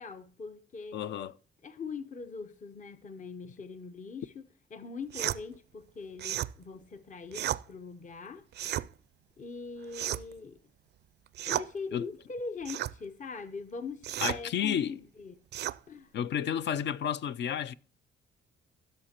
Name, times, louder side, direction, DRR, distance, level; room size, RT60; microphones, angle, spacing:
voice 1, 0.0-1.0 1.6-8.5 9.4-10.6 11.4-15.4 15.9-16.1, left 4 dB, 40° left, 0.8 m, -42 dB
voice 2, 0.9-1.3 11.9-12.1 14.2-15.0 16.1-17.7, left 9 dB, 60° left, 0.5 m, -31 dB
sound 1, 5.1-5.4 6.2-6.5 7.3-7.6 8.5-8.9 9.9-10.4 11.3-11.7 12.6-12.9 14.0-14.4 15.5-15.8, right 12 dB, 60° right, 0.4 m, -33 dB
16.0 x 6.5 x 2.9 m
cardioid pair, 90°, 20 cm